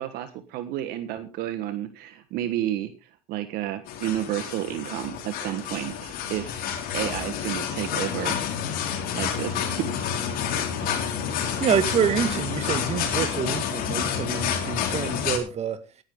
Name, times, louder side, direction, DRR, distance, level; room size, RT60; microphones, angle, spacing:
voice 1, 0.0-2.9 3.3-8.4 9.1-9.9 10.8-10.9, right 13 dB, 65° right, 1.5 m, -31 dB
sound 1, 3.9-15.4, left 8 dB, 60° left, 3.4 m, -29 dB
voice 2, 11.0-15.8, right 8 dB, 40° right, 2.0 m, -27 dB
16.5 x 10.5 x 3.7 m
supercardioid pair, 100°, 17 cm